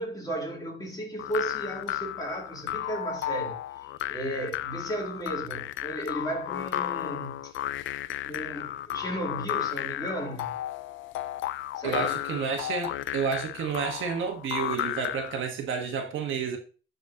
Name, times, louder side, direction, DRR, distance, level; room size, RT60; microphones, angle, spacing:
voice 1, 0.0-7.5 8.2-10.6 11.7-12.2, right 1 dB, 20° left, 2.8 m, -35 dB
sound 1, 1.2-15.4, left 13 dB, 75° left, 0.4 m, -33 dB
voice 2, 11.8-16.6, right 6 dB, 80° right, 1.3 m, -30 dB
9.9 x 4.1 x 2.8 m
cardioid pair, 90°, 20 cm